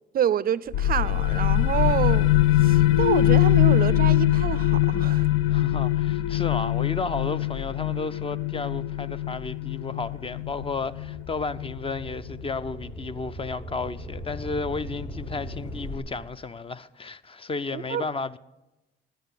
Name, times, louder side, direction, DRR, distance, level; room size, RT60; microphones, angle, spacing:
voice 1, 0.1-2.3 2.6-5.3 17.7-18.0, right 9 dB, 50° right, 0.4 m, -27 dB
sound 1, 0.7-12.1, left 14 dB, 85° left, 0.4 m, -22 dB
sound 2, 5.4-7.4 8.0-16.0, equal, 60° left, 2.7 m, -42 dB
voice 2, 5.5-18.4, left 4 dB, 30° left, 0.5 m, -33 dB
10.0 x 9.4 x 8.1 m
cardioid pair, 90°, 20 cm